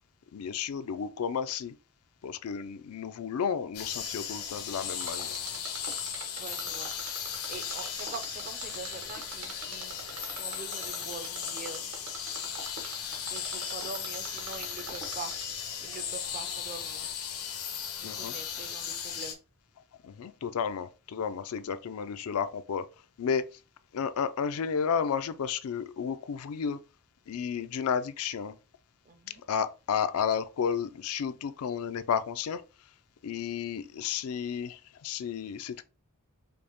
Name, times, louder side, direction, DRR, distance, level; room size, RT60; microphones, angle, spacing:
voice 1, 0.3-1.7 2.2-5.4 18.0-18.4 20.0-22.9 23.2-23.4 23.9-26.8 27.3-28.5 29.5-32.6 33.2-35.8, left 7 dB, 70° left, 0.4 m, -32 dB
sound 1, 3.7-19.3, left 8 dB, 85° left, 0.8 m, -37 dB
Mechanisms, 5.0-15.6 15.9-16.0, right 4 dB, 75° right, 1.1 m, -43 dB
voice 2, 6.4-6.9 7.5-10.0 10.3-11.9 13.3-15.3 15.8-17.1 18.0-19.4 29.1-29.4, right 4 dB, 40° right, 0.5 m, -44 dB
5.1 x 2.1 x 2.9 m
head